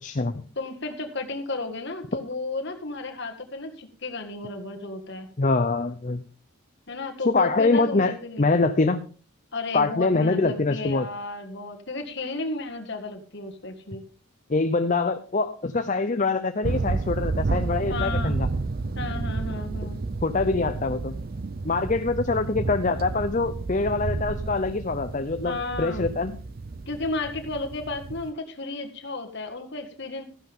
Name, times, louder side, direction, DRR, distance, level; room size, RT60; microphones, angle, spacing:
voice 1, 0.0-0.4 5.4-6.2 7.2-9.0 9.7-11.1 14.5-18.5 19.8-19.9 20.2-21.1 21.6-26.4, left 3 dB, 35° left, 8 dB, 0.6 m, -24 dB
voice 2, 0.5-5.3 6.9-8.5 9.5-14.0 17.9-18.4 18.9-20.0 25.4-26.1 26.9-30.2, left 3 dB, 50° left, 5 dB, 1.8 m, -33 dB
sound 1, 16.6-28.3, right 3 dB, 40° right, 0.5 m, -31 dB
14.5 x 11.0 x 3.6 m, 0.38 s
head